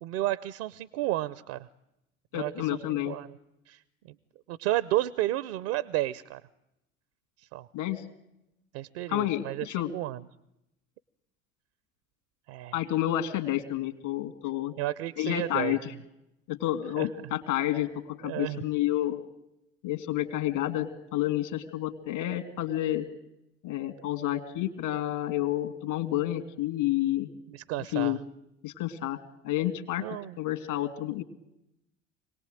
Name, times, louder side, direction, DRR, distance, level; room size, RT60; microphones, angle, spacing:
voice 1, 0.0-1.7 2.3-2.7 3.0-3.4 3.7-3.8 4.1-4.2 4.5-6.4 7.4-7.7 8.7-10.2 12.5-12.8 14.8-15.8 17.0-17.1 18.2-18.6 27.5-28.2 30.0-30.4, right 15 dB, 65° right, 19 dB, 0.8 m, -32 dB
voice 2, 2.3-3.2 7.7-8.0 9.1-9.9 12.7-14.7 15.2-15.9 16.5-19.2 19.8-23.1 23.6-27.3 27.9-28.2 28.6-29.2 29.4-30.0 30.4-31.2, left 13 dB, 70° left, 10 dB, 2.5 m, -30 dB
26.0 x 18.5 x 9.1 m, 0.89 s
hypercardioid pair, 60°, 37 cm